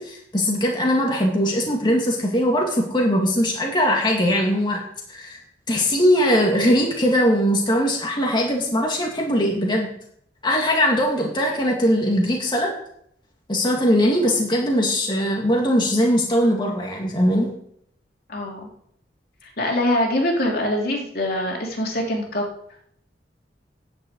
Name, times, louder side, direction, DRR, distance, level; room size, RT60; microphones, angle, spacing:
voice 1, 0.0-4.8 5.1-5.4 5.7-9.9 10.4-12.7 13.5-17.5, equal, 25° left, -1 dB, 2.2 m, -20 dB
voice 2, 18.3-18.7 19.4-22.5, left 1 dB, 60° left, 0 dB, 2.9 m, -24 dB
10.0 x 7.5 x 8.1 m, 0.69 s
head